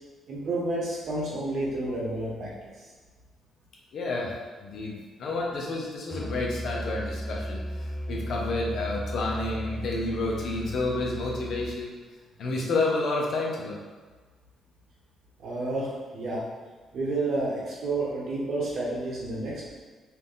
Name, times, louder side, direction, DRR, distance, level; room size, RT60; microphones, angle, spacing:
voice 1, 0.3-2.5 15.4-15.9 16.1-16.4 16.9-19.7, right 2 dB, 65° right, -5 dB, 1.3 m, -30 dB
voice 2, 3.9-4.3 4.6-7.6 8.1-11.9 12.4-13.8, left 2 dB, 65° left, -2 dB, 0.9 m, -30 dB
Musical instrument, 6.1-11.8, equal, 15° left, 0.5 m, -35 dB
4.2 x 2.6 x 3.6 m, 1.4 s
cardioid pair, 90°, 0 cm